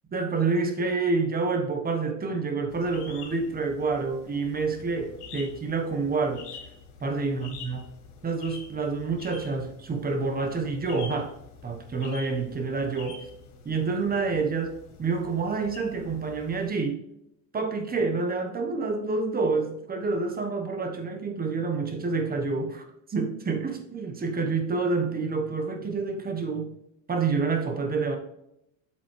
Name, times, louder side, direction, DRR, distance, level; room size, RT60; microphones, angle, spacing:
voice 1, 0.1-6.5 7.0-7.8 8.2-11.3 11.6-13.2 13.6-17.0 17.5-22.8 23.1-26.7 27.1-28.2, right 4 dB, 20° right, 5 dB, 1.2 m, -28 dB
sound 1, 2.7-16.7, left 5 dB, 90° left, 2.9 m, -47 dB
8.1 x 7.3 x 3.3 m, 0.79 s
supercardioid pair, 130°, 45 cm